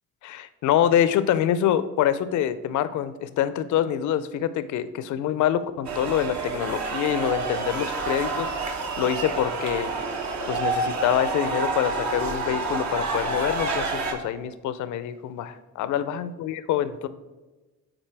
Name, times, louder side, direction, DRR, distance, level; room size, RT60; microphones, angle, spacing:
voice 1, 0.2-8.5 9.0-9.9 10.5-17.1, left 10 dB, 75° left, 14 dB, 0.5 m, -25 dB
sound 1, 5.8-14.1, right 3 dB, 65° right, 1.0 m, -28 dB
8.9 x 4.0 x 3.3 m, 1.2 s
cardioid pair, 90°, 30 cm